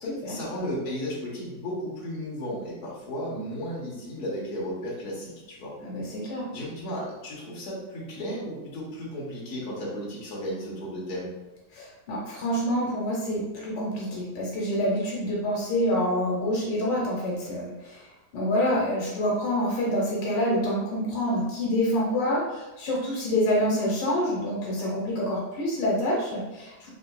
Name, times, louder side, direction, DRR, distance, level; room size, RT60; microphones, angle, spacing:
voice 1, 0.0-5.7 6.5-11.3, equal, 65° left, -5 dB, 1.4 m, -34 dB
voice 2, 5.8-6.5 11.7-18.1 18.3-26.9, equal, 85° left, -4 dB, 1.5 m, -27 dB
3.9 x 2.6 x 2.2 m, 1.0 s
omnidirectional pair, 1.9 m